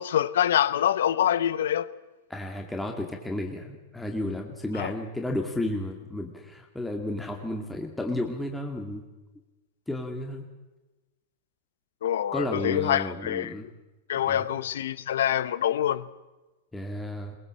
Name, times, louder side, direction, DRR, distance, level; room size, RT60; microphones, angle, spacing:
voice 1, 0.0-1.9 4.7-4.9 12.0-13.5 14.1-16.1, left 10 dB, 80° left, 17 dB, 0.9 m, -25 dB
voice 2, 2.3-9.0 9.9-10.5 12.3-13.7 14.3-14.5 16.7-17.4, left 1 dB, 5° left, 2 dB, 2.2 m, -32 dB
22.0 x 19.0 x 7.6 m, 1.1 s
hypercardioid pair, 135°, 0 cm